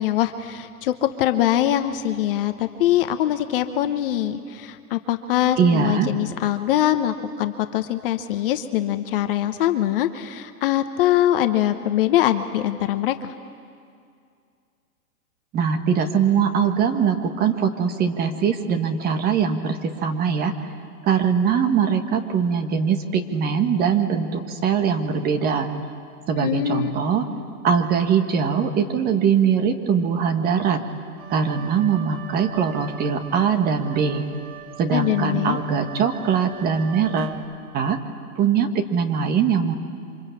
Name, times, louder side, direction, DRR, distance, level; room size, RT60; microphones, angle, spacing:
voice 1, 0.0-13.3 26.4-26.9 34.9-35.6, left 12 dB, 35° left, 9 dB, 1.0 m, -23 dB
voice 2, 5.6-6.1 15.5-20.5 21.0-25.7 26.3-27.3 27.6-30.8 31.3-34.2 34.8-37.4 37.7-38.0 38.4-39.7, right 7 dB, 20° right, 6 dB, 1.5 m, -21 dB
Wind instrument woodwind instrument, 31.2-37.7, right 9 dB, 65° right, 3.8 m, -41 dB
27.0 x 25.5 x 8.5 m, 2.3 s
hypercardioid pair, 140°, 47 cm